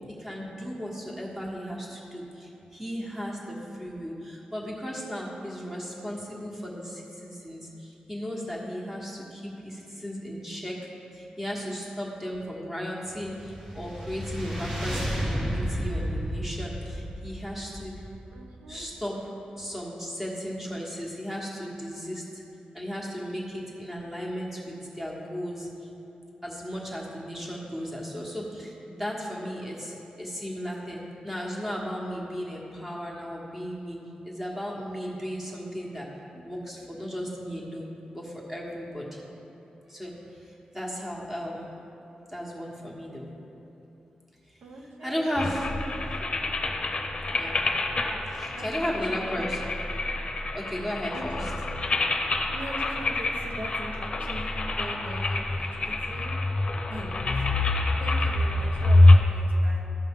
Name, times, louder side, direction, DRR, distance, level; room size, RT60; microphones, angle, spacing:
voice 1, 0.2-10.8 11.1-18.0 18.7-19.2 19.6-22.4 22.7-25.7 26.4-34.0 34.2-36.1 36.3-39.2 39.9-41.7 42.3-43.3 44.5-45.7 47.3-47.6 48.3-49.6 50.5-51.5, equal, 10° right, -3 dB, 1.5 m, -35 dB
sound 1, 13.1-18.6, equal, 40° right, 1.5 m, -32 dB
voice 2, 18.3-18.9 44.6-45.5 48.5-49.5 51.1-51.5 52.5-56.4 56.9-57.3 58.0-59.9, right 1 dB, 90° right, 0 dB, 0.9 m, -41 dB
sound 2, 45.4-59.2, left 2 dB, 40° left, 0.7 m, -25 dB
14.0 x 5.6 x 3.7 m, 3.0 s
wide cardioid pair, 105°, 3 cm